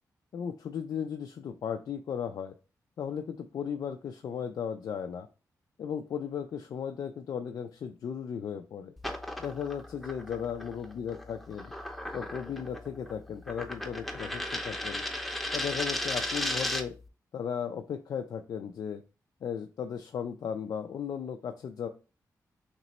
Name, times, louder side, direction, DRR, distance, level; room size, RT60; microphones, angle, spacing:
voice 1, 0.3-2.5 3.0-5.3 5.8-8.9 9.4-11.7 12.1-15.0 15.5-16.9 17.3-19.0 19.4-21.9, left 7 dB, 70° left, 5 dB, 0.3 m, -36 dB
sound 1, 9.0-17.0, left 1 dB, ahead, 0.7 m, -36 dB
3.0 x 2.9 x 4.1 m, 0.33 s
cardioid pair, 70°, 7 cm